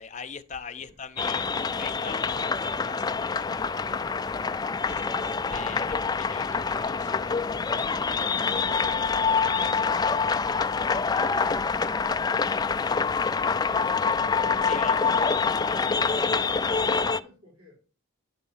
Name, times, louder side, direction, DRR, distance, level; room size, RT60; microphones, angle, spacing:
voice 1, 0.0-1.5 1.7-4.5 4.8-7.4 9.5-9.6 14.6-15.9, left 5 dB, 35° left, 8 dB, 0.7 m, -42 dB
sound 1, 1.2-17.2, left 5 dB, 20° left, 0.3 m, -26 dB
voice 2, 16.6-17.8, left 3 dB, 80° right, -6 dB, 5.1 m, -55 dB
11.0 x 3.6 x 7.1 m, 0.38 s
head